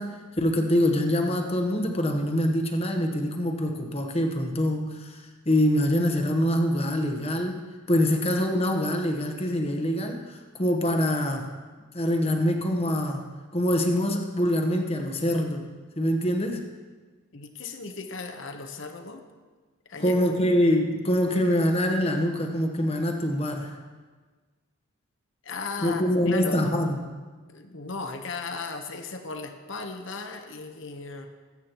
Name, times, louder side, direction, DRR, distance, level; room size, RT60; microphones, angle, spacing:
voice 1, 0.0-7.6 7.9-11.5 11.9-13.2 13.5-15.6 16.0-16.6 20.0-23.8 25.8-27.0, equal, 25° left, 4 dB, 1.0 m, -25 dB
voice 2, 17.3-19.2 19.9-20.6 25.4-26.7 27.5-31.3, left 4 dB, 55° left, 6 dB, 1.0 m, -36 dB
21.0 x 8.3 x 3.0 m, 1.4 s
head